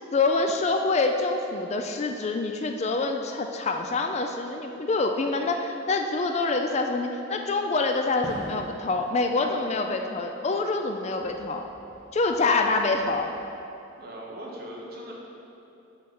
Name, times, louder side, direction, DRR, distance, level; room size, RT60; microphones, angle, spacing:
voice 1, 0.1-11.7 12.1-13.3, left 3 dB, 35° left, 5 dB, 0.3 m, -26 dB
Fireworks, 8.2-10.9 11.2-13.1, equal, 15° left, 1.3 m, -45 dB
voice 2, 14.0-15.1, right 1 dB, 50° right, -3 dB, 1.1 m, -39 dB
5.6 x 5.1 x 6.0 m, 2.8 s
head